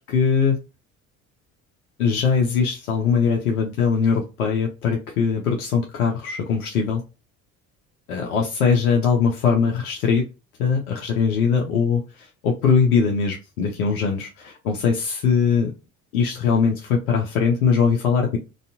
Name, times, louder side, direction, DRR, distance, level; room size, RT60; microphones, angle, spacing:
voice 1, 0.1-0.6 2.0-7.0 8.1-10.3 10.6-15.7 16.1-18.4, left 6 dB, 85° left, 1 dB, 0.6 m, -21 dB
3.1 x 2.6 x 2.5 m, 0.29 s
hypercardioid pair, 60°, 43 cm